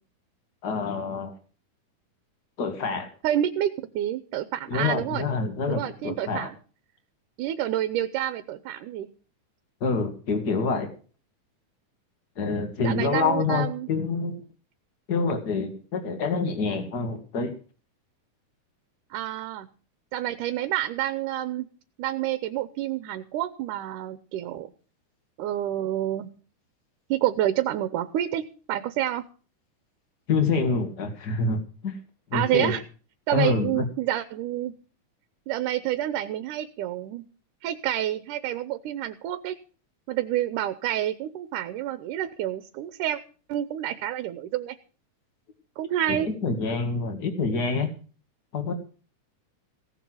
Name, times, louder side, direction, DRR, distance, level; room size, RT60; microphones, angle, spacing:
voice 1, 0.6-1.4 2.6-3.1 4.7-6.5 9.8-10.9 12.4-14.4 15.1-17.5 30.3-32.0 32.3-32.7 33.3-33.9 46.1-47.9 48.5-48.7, left 4 dB, 35° left, 7 dB, 2.2 m, -27 dB
voice 2, 3.2-3.7 3.9-5.3 5.7-6.6 7.4-9.1 12.8-13.9 19.1-19.7 20.1-21.7 22.0-24.7 25.4-26.3 27.1-28.4 28.7-29.2 32.3-32.8 33.3-34.8 35.5-37.2 37.6-39.6 40.1-43.2 43.5-44.8 45.8-46.3, right 12 dB, 80° right, 12 dB, 2.3 m, -28 dB
17.0 x 7.1 x 7.7 m, 0.39 s
omnidirectional pair, 3.7 m